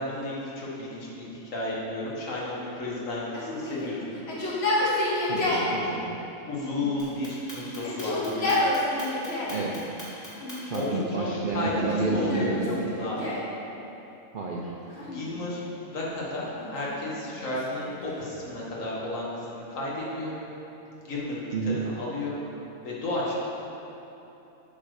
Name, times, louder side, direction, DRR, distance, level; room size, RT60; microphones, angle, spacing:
voice 1, 0.0-4.2 6.5-8.6 10.7-13.3 15.0-20.3 21.0-22.4 22.8-23.3, left 2 dB, 70° left, -5 dB, 1.7 m, -32 dB
Yell, 3.3-5.7 6.6-7.4 7.7-9.6 10.4-11.0 11.7-13.5 14.9-15.8 16.6-18.3, left 1 dB, 50° left, 1.3 m, -30 dB
voice 2, 5.3-6.2 9.5-9.8 10.6-12.7 14.3-14.7 21.5-21.8, right 4 dB, 60° right, -3 dB, 0.5 m, -30 dB
Clock, 7.0-11.0, left 1 dB, 30° left, 1.8 m, -42 dB
7.9 x 3.3 x 6.3 m, 3.0 s
omnidirectional pair, 1.5 m